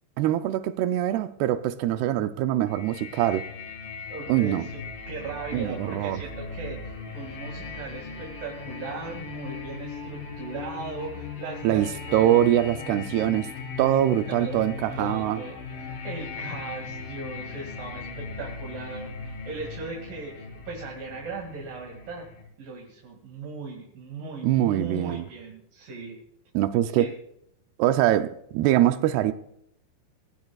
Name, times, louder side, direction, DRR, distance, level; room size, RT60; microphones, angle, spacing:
voice 1, 0.2-3.5 4.3-4.7 5.5-6.2 11.6-13.5 13.8-15.4 24.4-25.2 26.5-27.1 27.8-29.3, right 12 dB, 85° right, 2.3 m, -23 dB
sound 1, 2.7-22.4, left 4 dB, 50° left, 5.6 m, -38 dB
voice 2, 4.1-4.8 5.1-12.3 14.3-14.6 14.9-22.2 22.6-26.2 26.9-27.1, right 4 dB, 55° right, 3.6 m, -38 dB
22.5 x 16.5 x 2.4 m
omnidirectional pair, 5.3 m